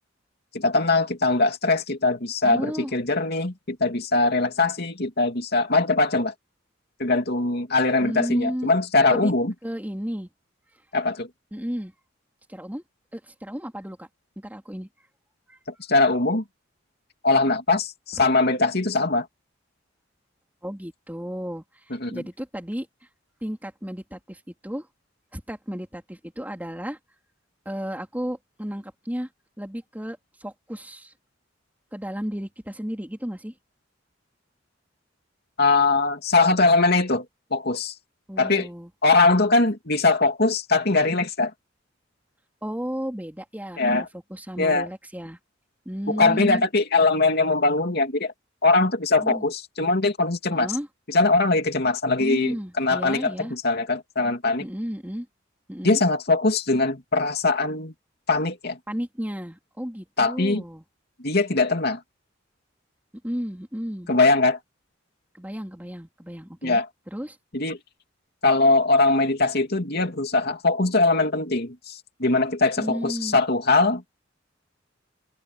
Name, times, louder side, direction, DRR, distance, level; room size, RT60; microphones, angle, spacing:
voice 1, 0.5-6.3 7.0-9.5 10.9-11.3 15.9-16.4 17.2-19.3 22.0-22.2 35.6-37.2 37.5-37.9 38.4-38.7 39.0-41.5 43.8-44.1 44.6-44.9 46.1-48.3 48.6-50.7 51.1-54.6 55.8-57.9 58.3-58.8 60.2-60.6 61.2-62.0 64.1-64.6 66.6-66.9 67.5-67.8 68.4-74.0, left 3 dB, 55° left, 2.9 m, -21 dB
voice 2, 2.4-2.9 8.0-8.7 9.1-9.3 9.6-10.3 11.5-11.9 12.5-12.8 13.1-14.1 14.4-14.9 15.5-15.6 20.6-21.6 22.1-22.9 23.4-24.9 25.3-27.0 27.7-29.3 29.6-31.1 31.9-33.5 38.3-38.9 42.6-45.4 45.9-46.6 49.2-49.5 50.6-50.9 52.2-53.5 54.6-55.3 55.7-56.0 58.9-60.8 63.2-64.1 65.3-66.8 67.1-67.4 72.8-73.4, equal, 10° right, 3.5 m, -33 dB
head